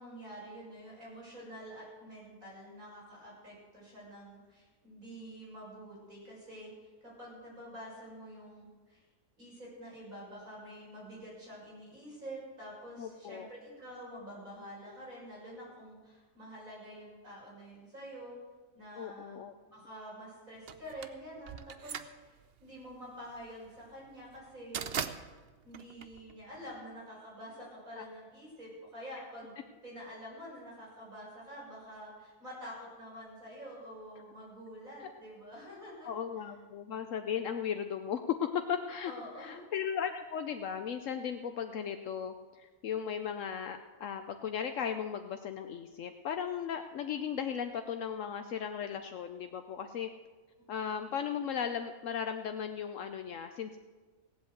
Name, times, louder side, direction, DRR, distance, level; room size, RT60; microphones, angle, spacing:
voice 1, 0.0-9.0 9.4-18.4 18.7-24.9 25.6-29.5 29.8-36.1 39.1-39.6, equal, 90° right, -5 dB, 7.2 m, -47 dB
voice 2, 13.0-13.5 18.9-19.5 36.0-39.1 39.4-50.1 50.7-53.8, left 8 dB, 70° left, 7 dB, 1.0 m, -36 dB
sound 1, 20.7-26.8, right 8 dB, 55° right, 0.8 m, -41 dB
17.5 x 8.1 x 7.9 m, 1.3 s
omnidirectional pair, 1.4 m